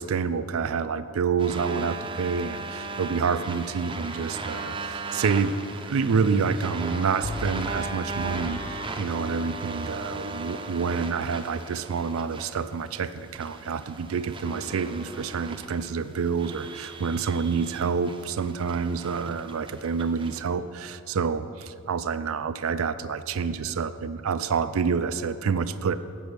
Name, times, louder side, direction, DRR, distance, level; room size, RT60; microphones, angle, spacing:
voice 1, 0.0-5.5 5.8-25.9, right 5 dB, 75° right, 12 dB, 0.4 m, -28 dB
sound 1, 1.4-20.4, right 3 dB, 25° right, 0.6 m, -37 dB
Bowed string instrument, 7.2-10.3, left 2 dB, 25° left, 0.4 m, -40 dB
8.2 x 6.9 x 6.2 m, 2.5 s
head